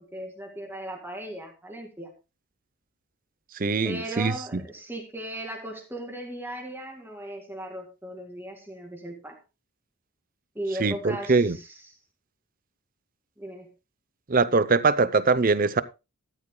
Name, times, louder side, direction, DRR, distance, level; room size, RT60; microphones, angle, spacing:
voice 1, 0.0-2.1 3.8-9.4 10.5-11.8 13.4-13.7, right 1 dB, 10° right, 2.2 m, -37 dB
voice 2, 3.6-4.6 10.8-11.6 14.3-15.8, right 4 dB, 40° right, 0.6 m, -22 dB
13.5 x 12.0 x 2.2 m
head